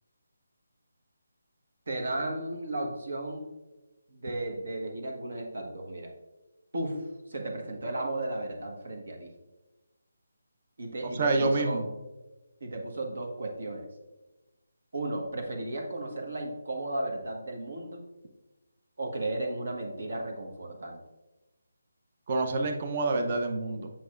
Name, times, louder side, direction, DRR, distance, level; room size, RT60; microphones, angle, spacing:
voice 1, 1.9-3.5 4.1-6.1 6.7-9.3 10.8-11.8 12.6-13.9 14.9-18.0 19.0-21.0, right 2 dB, 70° right, 2 dB, 1.5 m, -34 dB
voice 2, 11.2-11.9 22.3-23.9, right 2 dB, 40° right, 5 dB, 0.8 m, -27 dB
7.9 x 6.0 x 2.5 m, 1.1 s
figure-of-eight pair, 160°, 0 cm